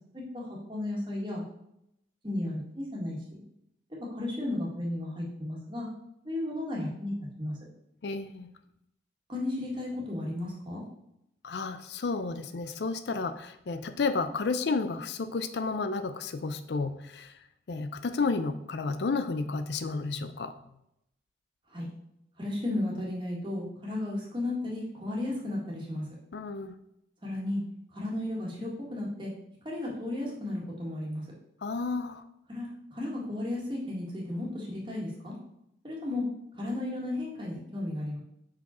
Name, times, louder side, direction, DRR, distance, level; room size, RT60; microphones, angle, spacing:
voice 1, 0.1-1.4 2.2-3.4 3.9-5.9 6.2-7.6 9.3-10.8 21.7-21.9 22.4-26.1 27.2-27.6 27.9-29.3 29.6-31.2 32.5-35.3 35.8-36.2 36.6-38.2, left 1 dB, 25° right, -3 dB, 1.7 m, -34 dB
voice 2, 8.0-8.5 11.4-17.4 17.7-20.5 26.3-26.8 31.6-32.2, left 4 dB, 65° left, 10 dB, 0.4 m, -32 dB
5.8 x 4.9 x 4.3 m, 0.79 s
head